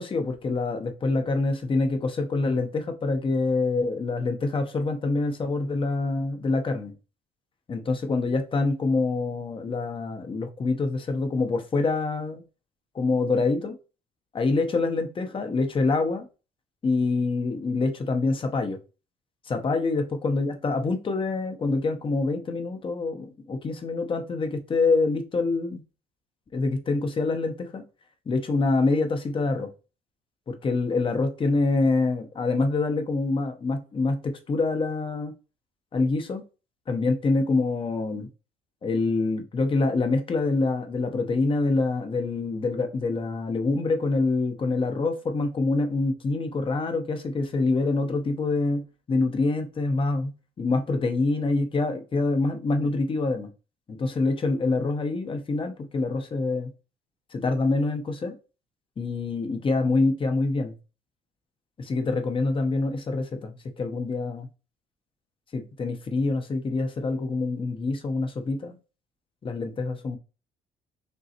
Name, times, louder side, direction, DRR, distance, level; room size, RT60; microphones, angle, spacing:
voice 1, 0.0-6.9 7.7-12.4 12.9-13.8 14.3-16.3 16.8-18.8 19.5-25.8 26.5-27.8 28.3-29.7 30.5-35.3 35.9-36.4 36.9-38.3 38.8-53.5 53.9-56.7 57.3-58.3 59.0-60.7 61.8-64.5 65.5-68.7 69.4-70.2, left 3 dB, 30° left, 0.8 m, -26 dB
5.3 x 3.0 x 2.9 m
cardioid pair, 110°, 17 cm